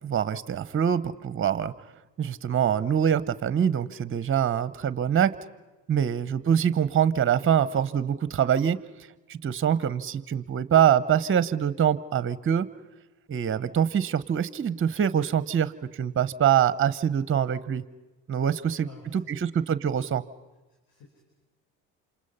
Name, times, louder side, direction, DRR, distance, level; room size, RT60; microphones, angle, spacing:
voice 1, 0.0-1.7 2.2-5.3 5.9-8.8 9.3-12.7 13.3-15.7 16.0-17.8 18.3-18.9 19.1-20.2, right 9 dB, 30° right, 16 dB, 0.9 m, -24 dB
voice 2, 18.6-19.5 20.7-21.2, left 3 dB, 65° left, 2 dB, 5.0 m, -52 dB
28.5 x 27.5 x 5.6 m, 1.1 s
hypercardioid pair, 65°, 39 cm